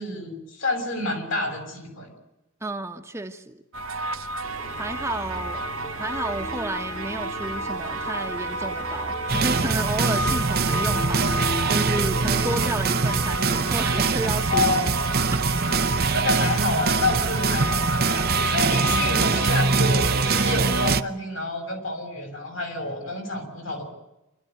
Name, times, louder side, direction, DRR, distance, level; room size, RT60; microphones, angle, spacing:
voice 1, 0.0-2.1 14.5-15.2 16.1-23.8, left 2 dB, 70° left, 4 dB, 7.0 m, -28 dB
voice 2, 2.6-3.6 4.8-5.6 6.0-14.7 15.3-15.4, right 1 dB, 15° right, 5 dB, 1.1 m, -32 dB
sound 1, 3.7-20.9, right 2 dB, 90° right, 1.3 m, -30 dB
sound 2, 4.4-13.3, left 1 dB, 35° left, 1.9 m, -38 dB
sound 3, 9.3-21.0, right 4 dB, 50° right, 0.8 m, -23 dB
28.0 x 13.0 x 9.2 m, 0.94 s
head